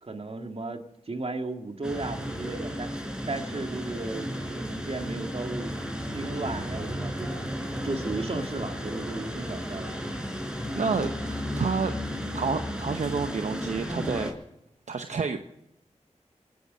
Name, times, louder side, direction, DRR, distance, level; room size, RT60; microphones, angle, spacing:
voice 1, 0.0-2.9 3.3-5.8 6.1-7.3 7.8-9.9, right 2 dB, 55° right, 5 dB, 2.0 m, -35 dB
sound 1, 1.8-14.3, equal, 5° right, 4.0 m, -34 dB
voice 2, 10.7-11.9 12.3-14.3 14.9-15.4, right 5 dB, 75° right, 7 dB, 0.9 m, -29 dB
25.0 x 9.6 x 5.1 m, 0.83 s
cardioid pair, 45°, 12 cm